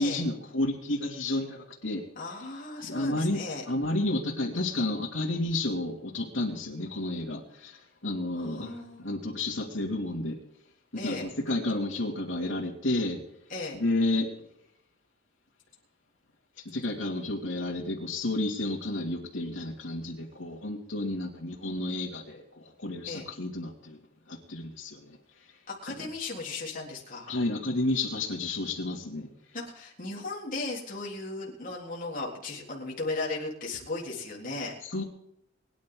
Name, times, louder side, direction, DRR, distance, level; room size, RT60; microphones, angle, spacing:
voice 1, 0.0-2.0 2.8-3.4 3.7-10.4 11.0-13.2 13.7-14.3 16.6-24.0 24.3-25.2 25.9-26.0 27.3-29.3 34.9-35.0, left 2 dB, 85° left, -2 dB, 2.8 m, -31 dB
voice 2, 2.2-3.6 8.4-9.1 10.9-11.3 13.5-13.8 23.1-23.3 25.7-27.3 29.5-34.8, left 3 dB, 45° left, -4 dB, 3.8 m, -36 dB
23.0 x 10.5 x 3.9 m, 0.76 s
head